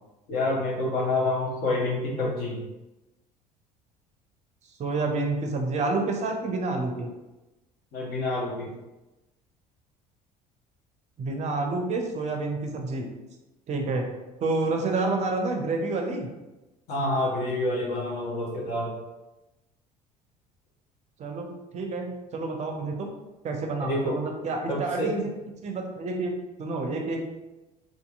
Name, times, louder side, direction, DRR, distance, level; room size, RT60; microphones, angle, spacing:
voice 1, 0.3-2.6 7.9-8.7 16.9-18.9 23.8-24.2 24.7-25.1, left 2 dB, 50° left, -3 dB, 0.9 m, -27 dB
voice 2, 4.8-7.1 11.2-13.1 13.7-14.1 14.4-16.3 21.2-23.1 23.4-25.3 25.6-27.3, right 3 dB, 35° right, 3 dB, 0.5 m, -29 dB
2.7 x 2.5 x 2.4 m, 1.0 s
figure-of-eight pair, 60°, 21 cm